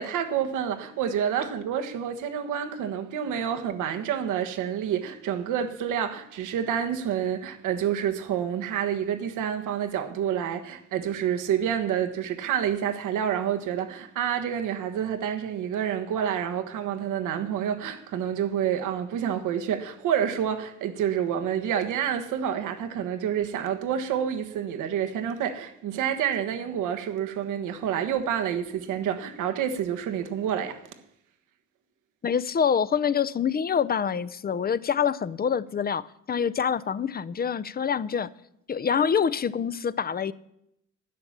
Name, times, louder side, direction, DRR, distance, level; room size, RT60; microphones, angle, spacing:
voice 1, 0.0-30.8, right 9 dB, 85° right, 1.4 m, -28 dB
voice 2, 32.2-38.3 38.7-40.3, left 7 dB, 30° left, 0.6 m, -26 dB
12.5 x 10.0 x 7.3 m
cardioid pair, 90°, 30 cm